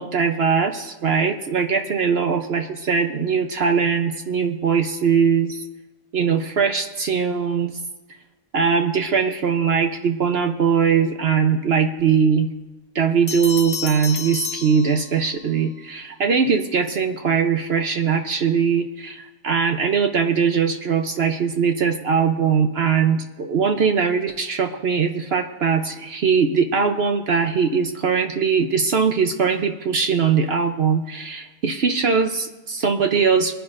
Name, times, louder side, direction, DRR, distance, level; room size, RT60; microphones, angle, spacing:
voice 1, 0.0-5.6 6.1-7.7 8.5-12.5 12.9-33.5, right 6 dB, 55° right, 6 dB, 0.8 m, -21 dB
Bell, 13.3-15.5, left 5 dB, 35° left, 0.5 m, -31 dB
22.5 x 10.5 x 2.5 m, 1.1 s
omnidirectional pair, 1.5 m